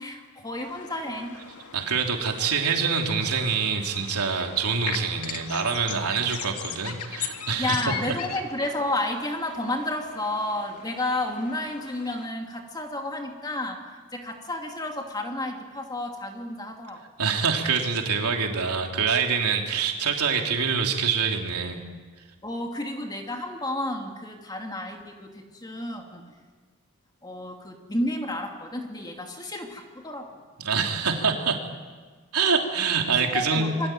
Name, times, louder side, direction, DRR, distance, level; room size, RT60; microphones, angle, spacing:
voice 1, 0.0-1.4 7.6-13.8 14.1-17.0 22.4-26.3 27.2-30.3 33.3-33.9, left 1 dB, 20° left, 2 dB, 2.5 m, -31 dB
sound 1, 0.6-12.3, left 7 dB, 85° left, 2.2 m, -40 dB
voice 2, 1.7-7.9 17.2-21.8 30.6-31.6 32.3-33.7, right 5 dB, 90° right, 2 dB, 3.4 m, -25 dB
27.0 x 23.0 x 9.2 m, 1.4 s
head